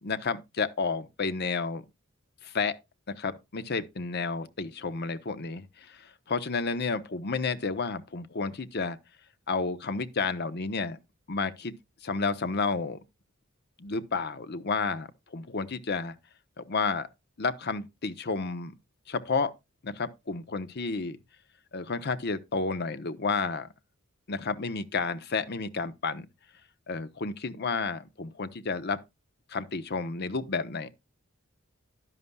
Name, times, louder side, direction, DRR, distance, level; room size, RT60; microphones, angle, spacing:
voice 1, 0.0-1.8 2.4-2.7 3.1-9.0 9.5-11.0 11.3-11.7 12.0-13.0 13.8-16.2 16.6-17.1 17.4-18.7 19.1-19.5 19.8-21.2 21.7-23.7 24.3-26.3 26.9-29.0 29.5-30.9, left 4 dB, 50° left, 0.8 m, -31 dB
11.0 x 11.0 x 2.3 m
head